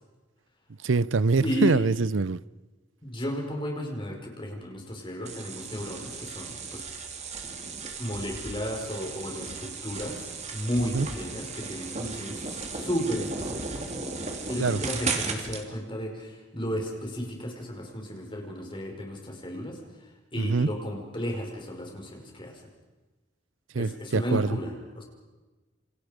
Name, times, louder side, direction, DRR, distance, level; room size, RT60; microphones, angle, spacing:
voice 1, 0.8-2.4 10.9-11.1 14.6-14.8 20.4-20.7 23.7-24.6, right 4 dB, 80° right, 0.7 m, -24 dB
voice 2, 1.4-1.9 3.0-6.8 8.0-13.9 14.2-19.8 20.3-22.6 23.7-25.0, equal, 25° left, 5.3 m, -33 dB
sound 1, 5.3-15.6, right 4 dB, 35° right, 2.9 m, -36 dB
28.5 x 27.0 x 5.2 m
head